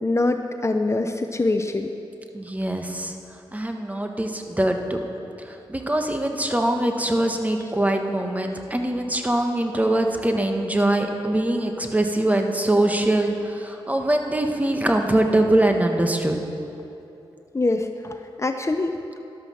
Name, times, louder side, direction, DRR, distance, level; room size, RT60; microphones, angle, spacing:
voice 1, 0.0-1.9 17.5-18.9, left 2 dB, 30° left, 6 dB, 0.7 m, -24 dB
voice 2, 2.3-3.1 3.5-5.0 5.4-16.4, right 1 dB, 15° right, 4 dB, 1.5 m, -23 dB
13.5 x 11.5 x 5.8 m, 2.8 s
cardioid pair, 55°, 10 cm